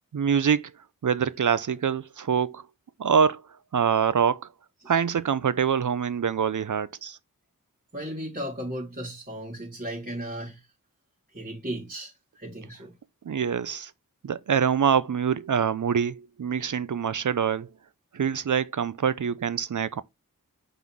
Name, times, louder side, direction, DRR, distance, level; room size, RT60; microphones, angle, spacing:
voice 1, 0.1-0.7 1.0-2.6 3.0-3.4 3.7-4.5 4.9-7.2 13.3-13.9 14.2-17.7 18.1-20.0, right 7 dB, 60° right, 0.6 m, -25 dB
voice 2, 7.9-10.6 11.3-12.1 12.4-12.9, right 1 dB, 30° right, 3.3 m, -35 dB
5.4 x 4.0 x 4.6 m
wide cardioid pair, 45°, 34 cm